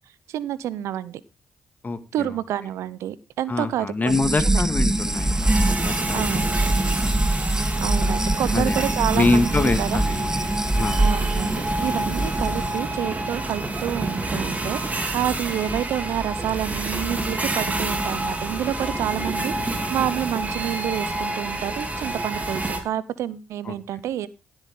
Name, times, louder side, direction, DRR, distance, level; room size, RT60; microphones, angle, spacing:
voice 1, 0.3-1.2 2.1-4.6 6.1-6.5 7.8-9.4 9.8-10.0 11.0-24.3, right 11 dB, 75° right, 19 dB, 0.7 m, -28 dB
voice 2, 1.8-2.3 3.5-7.1 8.5-10.5 10.8-11.0 15.7-15.8 23.7-23.8, left 3 dB, 35° left, 10 dB, 2.0 m, -26 dB
sound 1, 4.1-12.7, right 1 dB, 10° right, 1.4 m, -24 dB
sound 2, 4.9-22.8, right 2 dB, 30° right, 3.2 m, -28 dB
16.0 x 8.0 x 3.7 m, 0.28 s
hypercardioid pair, 45°, 5 cm